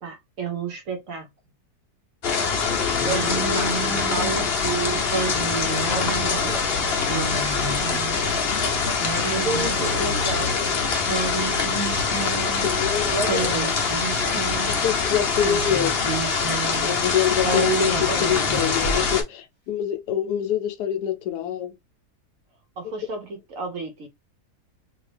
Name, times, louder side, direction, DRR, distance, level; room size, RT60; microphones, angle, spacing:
voice 1, 0.0-1.3 3.0-5.1 5.9-6.6 7.8-8.0 9.3-10.6 12.8-13.7 22.8-24.1, right 4 dB, 60° right, 1.1 m, -31 dB
sound 1, 2.2-19.2, left 5 dB, 55° left, 0.7 m, -24 dB
Singing, 3.0-4.5 5.1-6.4 7.0-8.4 9.0-10.5 11.1-12.9 13.3-14.9 15.4-17.0 17.4-19.0, right 3 dB, 20° right, 1.1 m, -30 dB
sound 2, 4.9-16.0, left 1 dB, 75° right, 1.3 m, -38 dB
voice 2, 12.6-13.5 14.7-16.2 16.8-21.8, left 10 dB, 75° left, 1.1 m, -26 dB
2.9 x 2.7 x 3.2 m
omnidirectional pair, 1.8 m